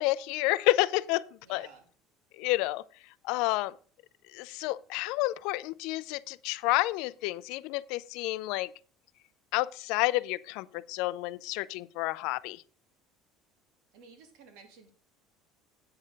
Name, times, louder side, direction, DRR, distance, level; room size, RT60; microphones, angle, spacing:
voice 1, 0.0-1.7 2.4-2.8 3.2-3.8 4.3-8.7 9.5-12.6, left 19 dB, 70° left, 0.4 m, -30 dB
voice 2, 1.4-1.9 13.9-14.9, right 5 dB, 65° right, 2.7 m, -54 dB
8.6 x 6.6 x 5.0 m
cardioid pair, 165°, 0 cm